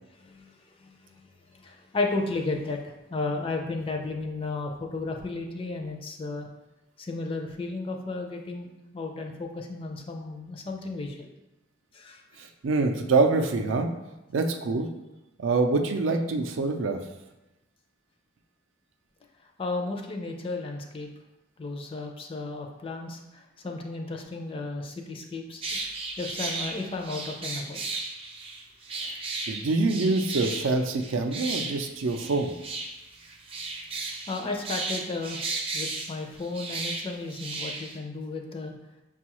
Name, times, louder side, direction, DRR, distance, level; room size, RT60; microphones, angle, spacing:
voice 1, 1.6-6.5 7.0-8.7 8.9-11.3 11.9-12.2 19.6-21.1 21.6-25.6 26.2-27.8 34.3-35.4 35.7-38.8, left 3 dB, 30° left, 2 dB, 0.4 m, -33 dB
voice 2, 12.6-13.9 14.3-14.9 15.4-17.0 29.5-32.5, right 3 dB, 80° right, 5 dB, 0.4 m, -25 dB
sound 1, 25.6-38.0, right 3 dB, 30° right, 0.5 m, -35 dB
6.1 x 2.3 x 2.9 m, 0.99 s
head